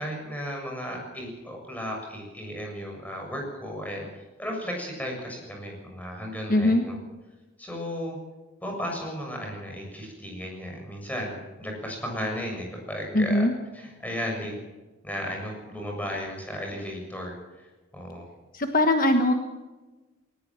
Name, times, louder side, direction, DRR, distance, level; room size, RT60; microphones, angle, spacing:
voice 1, 0.0-7.0 7.6-8.2 8.6-13.5 13.7-14.5 15.0-18.3, equal, 10° left, 0 dB, 7.0 m, -35 dB
voice 2, 6.5-6.8 13.1-13.5 18.5-19.3, left 1 dB, 40° left, 6 dB, 1.3 m, -21 dB
19.5 x 19.0 x 7.4 m, 1.2 s
head